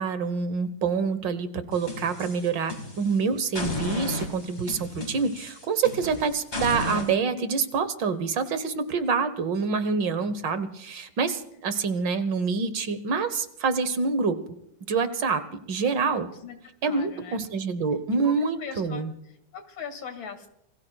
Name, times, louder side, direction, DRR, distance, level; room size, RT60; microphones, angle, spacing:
voice 1, 0.0-14.4 14.9-15.4 15.7-16.3 16.8-19.1, right 5 dB, 70° right, 11 dB, 1.9 m, -26 dB
sound 1, 1.7-3.1 3.5-7.1, left 2 dB, 35° left, 2.9 m, -34 dB
voice 2, 16.3-16.6 16.8-17.4 18.2-20.5, left 5 dB, 90° left, 6 dB, 3.1 m, -40 dB
27.5 x 20.5 x 2.4 m, 0.78 s
omnidirectional pair, 2.1 m